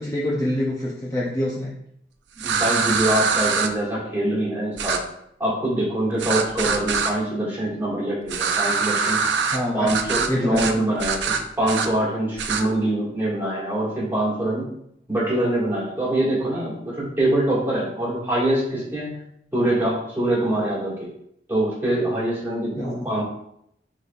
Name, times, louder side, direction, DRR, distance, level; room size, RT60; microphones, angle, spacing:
voice 1, 0.0-1.7 9.5-9.9 10.3-10.7 22.8-23.1, left 1 dB, 20° left, -5 dB, 0.5 m, -25 dB
voice 2, 2.4-5.0 5.4-9.2 9.7-14.7 15.1-19.2 19.5-21.1 21.5-23.2, right 1 dB, 10° right, -7 dB, 1.8 m, -24 dB
sound 1, 2.4-3.7 4.8-5.0 6.2-7.1 8.3-9.6 9.9-10.3 10.5-10.7 11.0-11.9 12.4-12.6, right 5 dB, 85° right, 0.5 m, -23 dB
5.0 x 4.0 x 2.4 m, 0.74 s
head